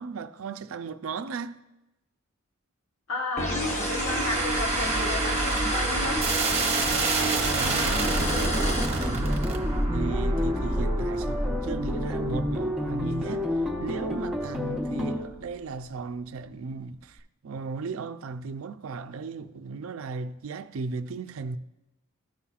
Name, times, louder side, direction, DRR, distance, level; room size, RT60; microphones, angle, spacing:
voice 1, 0.0-1.6 6.9-9.4 9.9-21.6, right 4 dB, 80° right, 0.4 m, -36 dB
voice 2, 3.1-6.2, left 3 dB, 90° left, 1.1 m, -33 dB
sound 1, 3.4-9.5, equal, 35° left, 0.9 m, -30 dB
sound 2, 3.7-14.9, right 2 dB, 30° right, 0.9 m, -28 dB
sound 3, 8.0-15.2, left 1 dB, 5° right, 0.9 m, -31 dB
13.5 x 5.6 x 2.4 m
head